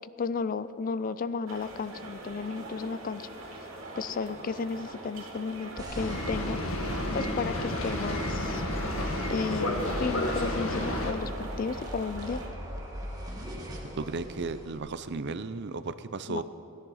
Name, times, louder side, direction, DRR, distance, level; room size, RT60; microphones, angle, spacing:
voice 1, 0.2-3.3 4.0-6.6 7.1-8.6 9.3-12.4 16.3-16.4, left 4 dB, 40° left, 14 dB, 0.4 m, -33 dB
sound 1, 1.5-12.5, right 2 dB, 70° right, 2.6 m, -43 dB
sound 2, 5.8-14.8, equal, 15° right, 1.6 m, -38 dB
Boat Water vehicle, 5.9-11.1, left 1 dB, 70° left, 1.7 m, -32 dB
voice 2, 14.0-16.4, right 4 dB, 55° right, 12 dB, 0.6 m, -34 dB
16.5 x 10.5 x 5.6 m, 2.6 s
head